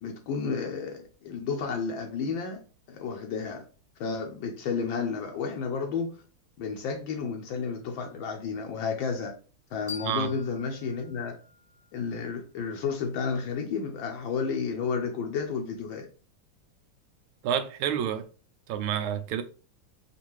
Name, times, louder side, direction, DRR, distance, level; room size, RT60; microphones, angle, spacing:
voice 1, 0.0-2.6 2.9-3.6 4.0-6.2 6.6-9.4 9.7-11.4 11.9-16.1, left 5 dB, 75° left, 1.4 m, -32 dB
sound 1, 9.9-12.7, left 6 dB, 15° right, 0.9 m, -46 dB
voice 2, 17.4-18.3 18.7-19.4, right 9 dB, 85° right, 1.4 m, -29 dB
5.3 x 2.5 x 3.0 m
omnidirectional pair, 2.2 m